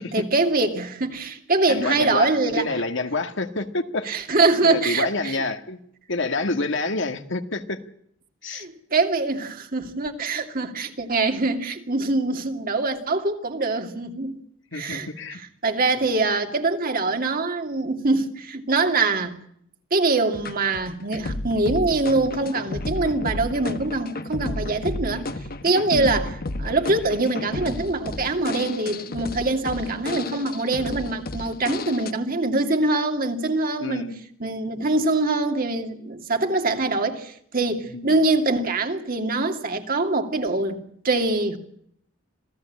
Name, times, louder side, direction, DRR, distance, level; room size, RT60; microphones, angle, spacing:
voice 1, 0.1-2.6 4.1-5.4 8.5-14.4 14.7-15.1 15.6-19.4 19.9-25.3 25.6-26.3 26.6-34.1 34.4-41.6, right 3 dB, 45° right, 2.6 m, -24 dB
voice 2, 1.7-4.1 4.6-5.8 6.1-7.8 8.4-8.7 14.7-15.4 25.9-26.2 33.8-34.2 37.9-38.2, left 3 dB, 65° left, 1.9 m, -28 dB
sound 1, 20.3-32.1, left 2 dB, 50° left, 1.4 m, -32 dB
27.0 x 17.0 x 8.7 m
head